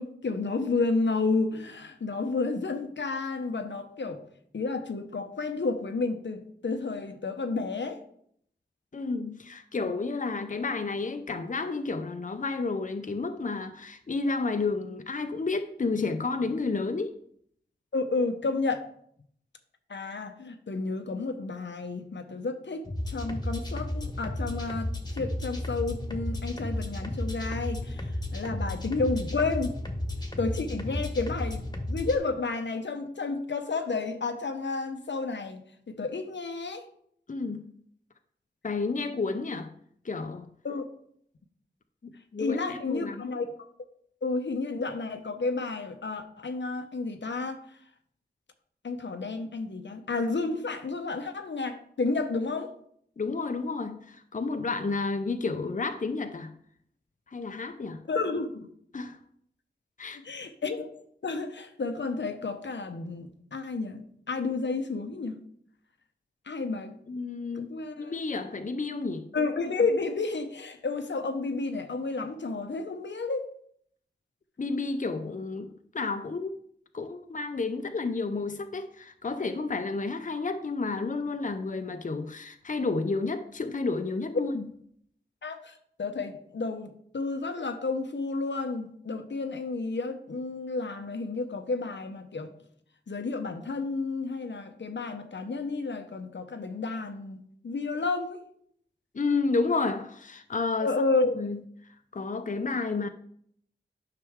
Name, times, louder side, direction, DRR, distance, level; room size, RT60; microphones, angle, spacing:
voice 1, 0.0-4.2 4.5-8.0 17.9-18.9 19.9-29.7 30.4-36.8 40.6-40.8 42.4-43.5 44.2-47.6 48.8-52.7 58.1-58.7 60.2-60.9 61.2-65.4 66.5-66.9 67.6-68.1 69.3-73.5 84.3-84.5 85.4-92.5 93.1-98.4 100.8-101.3, left 3 dB, 85° left, 0.9 m, -31 dB
voice 2, 8.9-17.2 37.3-37.8 38.6-39.7 40.0-40.5 42.0-43.2 53.2-56.6 57.3-58.0 58.9-59.2 60.0-60.2 67.1-69.3 74.6-76.5 76.9-84.7 99.1-101.0 101.3-101.6 102.1-103.1, left 3 dB, 45° left, 0.6 m, -31 dB
sound 1, 22.8-32.2, left 1 dB, 20° left, 1.3 m, -33 dB
9.7 x 5.9 x 3.6 m
wide cardioid pair, 70°, 18 cm